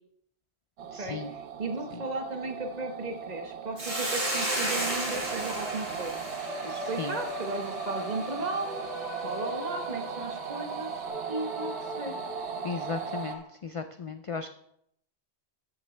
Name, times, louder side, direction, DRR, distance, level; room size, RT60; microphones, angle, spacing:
sound 1, 0.8-13.4, right 7 dB, 75° right, 1.0 m, -38 dB
voice 1, 0.9-1.3 6.7-7.2 12.6-14.5, left 5 dB, 60° left, 8 dB, 0.3 m, -36 dB
voice 2, 1.6-6.2 6.6-8.8 9.2-12.1, right 2 dB, 40° right, 4 dB, 1.2 m, -35 dB
sound 2, 3.8-13.4, left 1 dB, ahead, 1.9 m, -41 dB
Hiss, 3.8-8.3, right 1 dB, 60° right, 3.0 m, -34 dB
14.0 x 6.5 x 3.3 m, 0.73 s
omnidirectional pair, 1.1 m